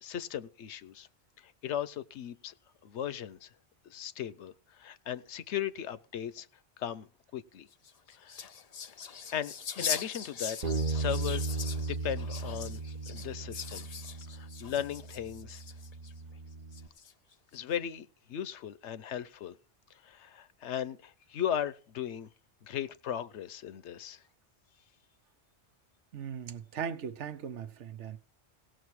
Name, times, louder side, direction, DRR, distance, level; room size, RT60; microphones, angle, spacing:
voice 1, 0.0-1.1 1.4-2.5 2.8-3.5 3.9-6.5 6.8-7.1 7.3-7.7 8.1-8.5 9.3-10.6 10.9-11.5 11.9-13.9 14.3-15.6 17.5-19.6 20.0-22.3 22.6-24.2, left 9 dB, 80° left, 1.0 m, -37 dB
sound 1, 7.7-16.1 16.7-17.3, left 7 dB, 45° left, 0.5 m, -41 dB
Bass guitar, 10.6-16.9, right 3 dB, 40° right, 1.1 m, -36 dB
voice 2, 26.1-28.2, right 7 dB, 90° right, 1.2 m, -38 dB
17.5 x 6.3 x 4.7 m
omnidirectional pair, 1.2 m